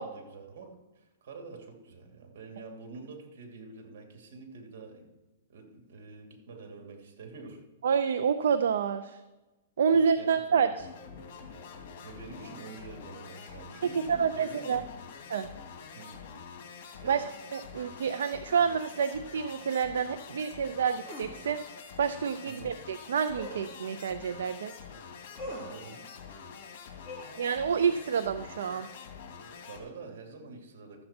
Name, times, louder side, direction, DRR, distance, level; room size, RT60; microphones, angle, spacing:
voice 1, 0.0-5.0 5.5-7.7 9.9-10.9 12.0-14.9 15.9-16.2 16.6-17.2 22.4-22.7 25.6-26.0 29.6-31.0, right 4 dB, 65° right, 3 dB, 2.7 m, -47 dB
voice 2, 7.8-9.2 9.8-10.9 14.1-14.8 15.3-15.5 17.0-17.2 17.5-21.6 22.0-24.7 27.4-28.9, right 6 dB, 80° right, 10 dB, 0.5 m, -28 dB
sound 1, 10.8-29.8, left 6 dB, 50° left, 2.2 m, -46 dB
sound 2, 21.0-21.3 23.3-23.7 25.3-25.7 27.0-27.7, equal, ahead, 3.2 m, -42 dB
13.0 x 7.8 x 4.4 m, 1.1 s
hypercardioid pair, 145°, 0 cm